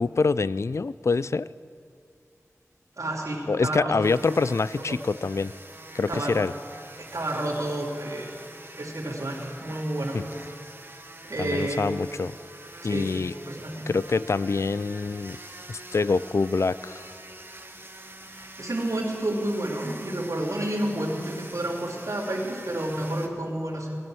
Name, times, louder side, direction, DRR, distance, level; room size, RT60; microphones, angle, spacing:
voice 1, 0.0-1.5 3.5-5.5 5.9-6.5 10.1-10.3 11.4-12.3 12.8-13.3 13.9-15.4 15.7-17.1, left 4 dB, 60° left, 18 dB, 0.3 m, -25 dB
voice 2, 3.0-4.0 4.9-5.0 6.1-6.4 7.0-8.3 8.8-10.2 11.2-11.9 12.8-13.1 13.4-13.9 18.2-24.0, right 1 dB, 70° right, -3 dB, 3.0 m, -30 dB
sound 1, 4.0-23.3, right 1 dB, 40° right, 1.4 m, -45 dB
18.0 x 11.0 x 6.3 m, 2.4 s
wide cardioid pair, 50°, 6 cm